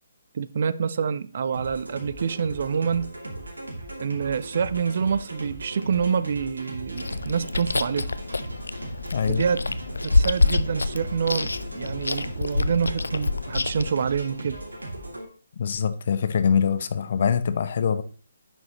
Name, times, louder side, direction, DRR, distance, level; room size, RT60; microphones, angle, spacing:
voice 1, 0.3-3.1 4.0-8.1 9.3-9.6 10.0-14.6, right 6 dB, 50° right, 0.5 m, -27 dB
sound 1, 1.5-15.3, right 1 dB, 75° right, 2.5 m, -38 dB
Chewing mastication, 7.0-13.9, left 3 dB, 70° left, 0.4 m, -26 dB
voice 2, 9.1-9.5 15.6-18.0, left 7 dB, 45° left, 0.8 m, -24 dB
10.5 x 6.2 x 3.0 m
figure-of-eight pair, 140°, 0 cm